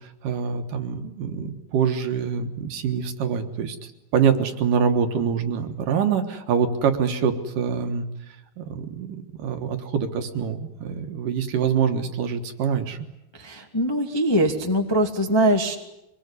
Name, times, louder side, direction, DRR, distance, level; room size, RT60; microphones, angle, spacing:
voice 1, 0.2-3.8 4.1-8.1 8.6-13.0, right 7 dB, 60° right, 7 dB, 2.7 m, -25 dB
voice 2, 13.3-15.7, right 1 dB, 25° left, 2 dB, 0.5 m, -22 dB
24.0 x 21.5 x 9.7 m, 0.89 s
omnidirectional pair, 4.7 m